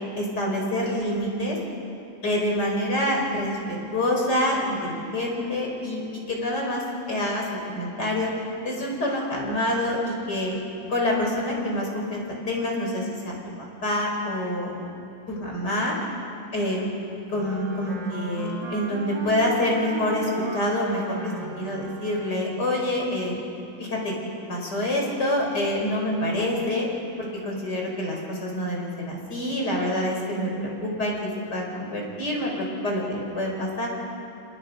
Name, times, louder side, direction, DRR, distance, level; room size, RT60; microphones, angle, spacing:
voice 1, 0.2-1.6 2.2-8.3 8.6-10.6 10.9-13.3 13.8-14.8 15.3-15.9 16.5-16.9 17.3-23.4 23.8-26.9 27.2-33.9, left 1 dB, 55° left, -1 dB, 5.6 m, -27 dB
Wind instrument woodwind instrument, 17.3-22.7, right 2 dB, 70° right, 2.5 m, -36 dB
30.0 x 28.5 x 5.4 m, 2.9 s
omnidirectional pair, 2.1 m